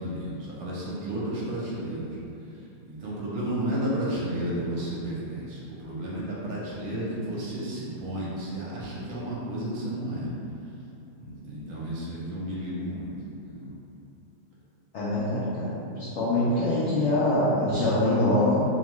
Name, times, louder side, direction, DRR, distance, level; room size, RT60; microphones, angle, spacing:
voice 1, 0.0-2.1 2.9-10.3 11.2-13.1 13.4-13.7, right 1 dB, 70° right, -7 dB, 1.0 m, -32 dB
voice 2, 14.9-18.6, left 1 dB, 75° left, -10 dB, 0.6 m, -24 dB
2.8 x 2.2 x 3.0 m, 2.8 s
omnidirectional pair, 1.8 m